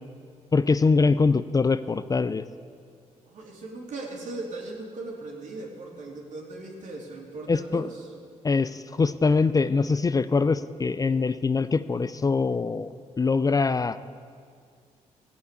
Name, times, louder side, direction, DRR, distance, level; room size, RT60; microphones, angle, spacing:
voice 1, 0.5-2.4 7.5-7.9 8.4-14.0, left 4 dB, 30° left, 14 dB, 0.5 m, -23 dB
voice 2, 3.2-8.1, right 2 dB, 70° right, -1 dB, 3.1 m, -38 dB
16.0 x 8.4 x 8.3 m, 2.2 s
cardioid pair, 80°, 13 cm